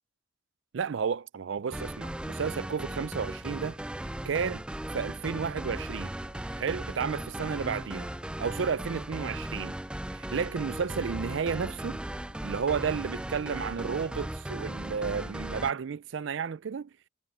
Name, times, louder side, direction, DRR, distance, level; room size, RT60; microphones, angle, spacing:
voice 1, 0.7-3.8 4.2-4.6 4.9-6.1 6.6-8.1 8.4-9.7 10.1-12.0 12.4-16.9, right 6 dB, 75° right, 0.4 m, -32 dB
sound 1, 1.7-15.7, right 1 dB, 5° right, 0.3 m, -37 dB
Wind instrument woodwind instrument, 5.6-13.8, left 3 dB, 70° left, 5.5 m, -60 dB
head